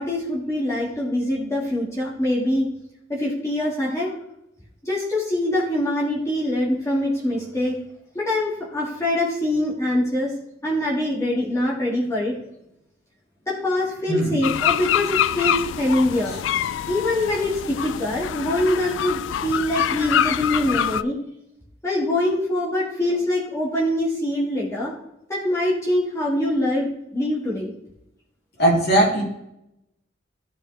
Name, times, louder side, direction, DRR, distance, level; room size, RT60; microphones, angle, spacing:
voice 1, 0.0-2.7 3.1-4.1 4.8-7.8 8.2-10.3 10.6-12.4 13.5-16.3 16.9-21.2 21.8-24.9 25.3-27.7, left 1 dB, 15° left, -6 dB, 1.7 m, -24 dB
sound 1, 14.4-21.0, left 10 dB, 90° left, 0.3 m, -25 dB
voice 2, 28.6-29.2, right 1 dB, 60° left, -3 dB, 3.2 m, -18 dB
14.0 x 5.2 x 3.2 m, 0.84 s
head